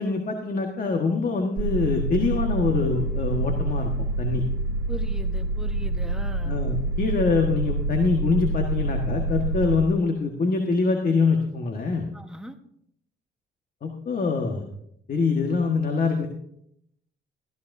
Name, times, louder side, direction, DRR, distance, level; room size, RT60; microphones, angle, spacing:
voice 1, 0.0-3.9 4.2-4.4 6.4-12.1 13.8-14.6 15.1-16.3, left 4 dB, 45° left, 3 dB, 1.6 m, -24 dB
sound 1, 1.6-9.8, right 2 dB, 70° right, 0.9 m, -27 dB
voice 2, 4.9-6.6 12.1-12.6, right 1 dB, 5° right, 5 dB, 1.3 m, -39 dB
17.0 x 13.5 x 2.7 m, 0.74 s
cardioid pair, 90°, 20 cm